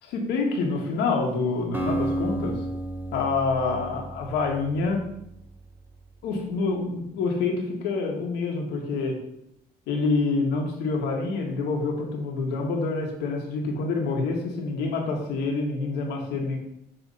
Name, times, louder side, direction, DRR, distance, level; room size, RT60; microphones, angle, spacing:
voice 1, 0.1-2.6 3.1-5.0 6.2-9.2 9.9-16.6, left 3 dB, 85° left, 1 dB, 1.7 m, -27 dB
Acoustic guitar, 1.7-5.8, right 1 dB, 10° right, 1.0 m, -32 dB
7.0 x 3.5 x 5.4 m, 0.76 s
cardioid pair, 110°, 17 cm